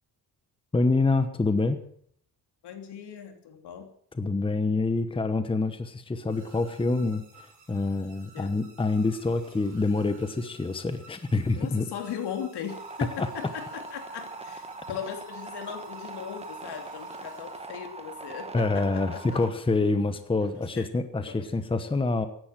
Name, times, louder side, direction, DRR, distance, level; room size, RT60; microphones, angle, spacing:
voice 1, 0.7-1.8 4.2-11.8 13.2-13.3 18.5-22.3, left 3 dB, 15° left, 10 dB, 1.1 m, -26 dB
voice 2, 2.6-3.9 8.3-8.5 11.5-19.4 20.7-20.8 21.3-21.4, left 8 dB, 75° left, 5 dB, 3.1 m, -38 dB
sound 1, 6.3-18.2, right 3 dB, 45° right, 7.3 m, -55 dB
sound 2, 12.7-19.5, right 3 dB, 15° right, 1.6 m, -41 dB
16.0 x 11.5 x 7.5 m, 0.64 s
cardioid pair, 140°, 41 cm